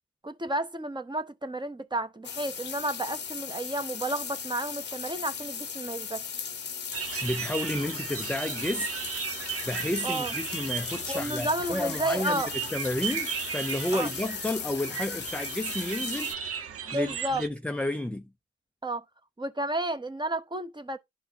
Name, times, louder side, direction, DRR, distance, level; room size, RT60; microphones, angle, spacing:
voice 1, 0.2-6.4 10.0-10.3 11.1-12.5 13.9-14.1 16.9-17.4 18.8-19.0 19.4-21.0, right 1 dB, 15° right, 0.9 m, -31 dB
sound 1, 2.2-16.3, left 7 dB, 35° left, 0.8 m, -37 dB
sound 2, 6.9-17.5, right 7 dB, 50° right, 0.8 m, -36 dB
voice 2, 7.2-8.9 9.7-12.4 12.7-16.6 16.9-18.3, left 1 dB, 5° left, 0.5 m, -31 dB
11.5 x 4.3 x 2.8 m
cardioid pair, 90°, 30 cm